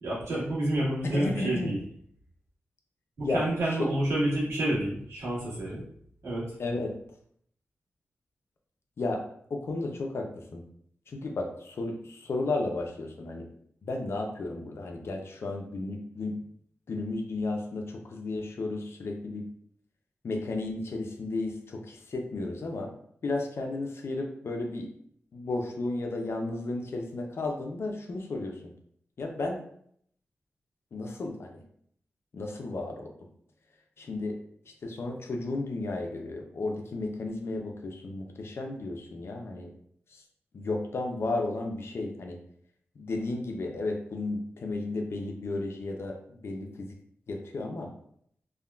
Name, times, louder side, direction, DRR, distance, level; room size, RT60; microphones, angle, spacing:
voice 1, 0.0-1.8 3.2-5.8 6.2-6.5, right 1 dB, 90° right, -8 dB, 1.4 m, -29 dB
voice 2, 1.0-1.7 3.2-3.4 6.6-6.9 9.0-9.2 9.5-10.6 11.1-13.5 13.8-16.4 16.9-19.4 20.2-22.9 23.2-24.9 25.3-28.6 29.2-29.6 30.9-31.6 32.3-33.1 34.0-34.3 34.7-39.7 40.1-40.2 40.5-42.4 43.0-46.2 46.4-47.0 47.3-47.9, left 2 dB, 65° left, 2 dB, 0.5 m, -33 dB
3.5 x 2.2 x 2.2 m, 0.67 s
wide cardioid pair, 85°, 5 cm